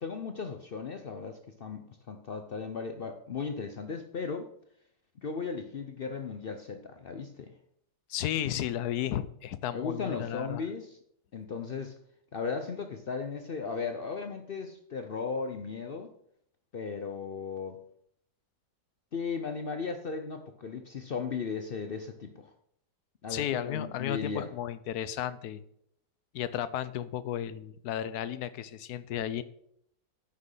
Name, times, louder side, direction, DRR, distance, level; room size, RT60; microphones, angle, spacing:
voice 1, 0.0-4.5 5.2-7.5 9.7-11.0 11.3-11.9 12.3-16.1 16.7-17.8 19.1-22.5 23.2-24.5, left 5 dB, 85° left, 6 dB, 0.5 m, -36 dB
voice 2, 8.1-10.6 23.3-25.6 26.3-29.4, left 11 dB, 70° left, 15 dB, 1.1 m, -33 dB
9.8 x 6.5 x 5.5 m, 0.70 s
omnidirectional pair, 2.0 m